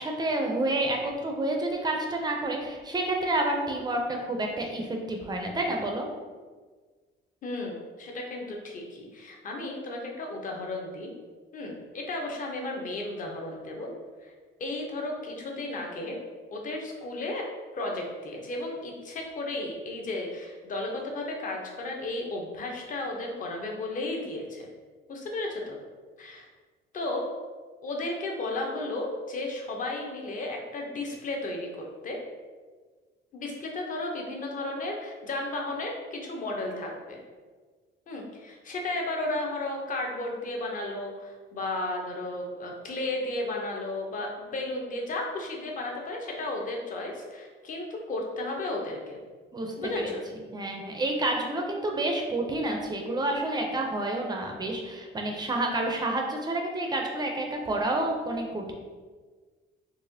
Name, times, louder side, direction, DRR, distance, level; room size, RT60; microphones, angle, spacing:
voice 1, 0.0-6.1 49.5-50.1 50.5-58.7, right 2 dB, 20° right, 1 dB, 0.4 m, -29 dB
voice 2, 7.4-11.1 11.5-13.9 14.2-14.3 14.6-16.2 16.5-17.4 17.7-24.7 25.1-25.8 26.2-26.5 26.9-27.3 27.8-31.7 32.0-32.2 33.3-37.2 38.1-49.2 49.8-50.2, left 2 dB, 40° left, 0 dB, 0.7 m, -34 dB
4.0 x 2.8 x 2.6 m, 1.4 s
cardioid pair, 150°, 21 cm